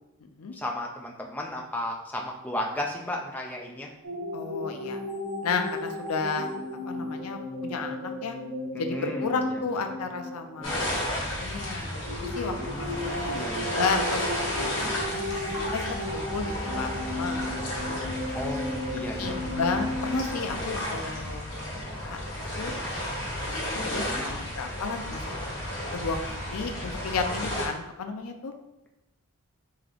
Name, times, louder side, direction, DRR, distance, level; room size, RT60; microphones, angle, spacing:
voice 1, 0.5-3.9 8.9-9.6 10.6-10.9 12.6-13.8 18.3-19.4 23.9-24.4, left 1 dB, 5° left, 0 dB, 0.4 m, -35 dB
sound 1, 4.0-11.2 12.0-20.5, left 1 dB, 75° right, 1.0 m, -35 dB
voice 2, 4.3-5.0 5.4-6.5 6.9-8.4 8.8-15.2 15.7-18.2 19.2-21.4 21.7-22.2 22.6-22.7 23.5-25.2 25.9-28.5, left 4 dB, 85° left, 6 dB, 0.5 m, -33 dB
sound 2, 10.6-27.7, left 1 dB, 60° left, 1.4 m, -33 dB
3.7 x 2.8 x 3.4 m, 0.95 s
head